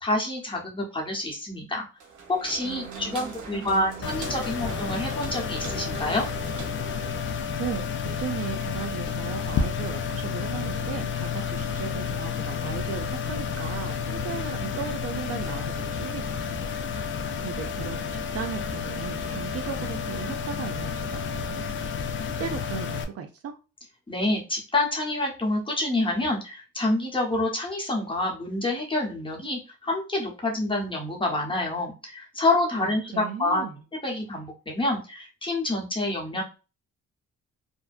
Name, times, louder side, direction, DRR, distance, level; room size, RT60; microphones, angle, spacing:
voice 1, 0.0-1.9 2.3-6.3 24.1-33.6 34.0-36.4, left 2 dB, 15° left, 0.9 m, -27 dB
sound 1, 2.0-7.5, right 5 dB, 85° right, 0.9 m, -41 dB
voice 2, 2.6-4.3 7.6-16.6 16.9-17.1 17.4-21.7 22.2-23.6 32.8-33.8, right 7 dB, 50° right, 0.4 m, -37 dB
sound 2, 4.0-23.0, left 6 dB, 40° left, 0.4 m, -31 dB
2.6 x 2.1 x 2.4 m
cardioid pair, 90°, 30 cm